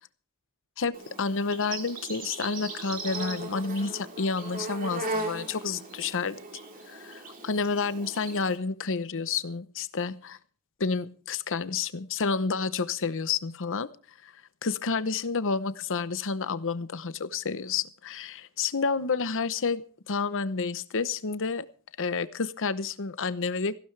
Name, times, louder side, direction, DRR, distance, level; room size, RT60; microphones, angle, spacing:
voice 1, 0.8-6.4 6.9-10.4 10.8-13.9 14.2-14.3 14.6-21.7 22.0-23.8, left 4 dB, 60° left, 0.9 m, -30 dB
Insect, 0.9-8.6, right 2 dB, 40° right, 3.4 m, -38 dB
18.0 x 15.5 x 3.3 m
head